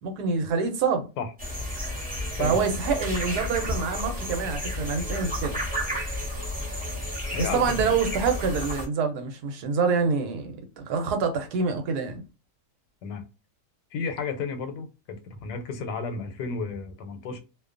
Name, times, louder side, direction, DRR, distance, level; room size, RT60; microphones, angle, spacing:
voice 1, 0.0-1.1 2.4-5.6 7.4-12.2, right 5 dB, 75° right, 1.1 m, -26 dB
sound 1, 1.4-8.9, left 1 dB, 10° right, 0.6 m, -32 dB
voice 2, 2.4-2.7 7.3-8.0 13.0-13.2 13.9-17.4, left 4 dB, 90° left, 1.2 m, -33 dB
2.7 x 2.2 x 2.3 m
omnidirectional pair, 1.7 m